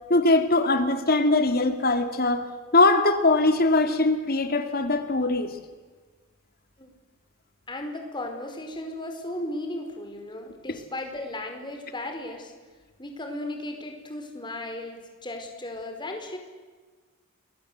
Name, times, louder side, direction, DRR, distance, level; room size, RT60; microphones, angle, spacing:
voice 1, 0.1-2.5 2.7-5.5, left 2 dB, 45° left, 8 dB, 2.1 m, -21 dB
voice 2, 7.7-12.5 13.0-16.4, left 1 dB, 20° left, 4 dB, 4.7 m, -35 dB
29.5 x 22.5 x 8.0 m, 1.4 s
head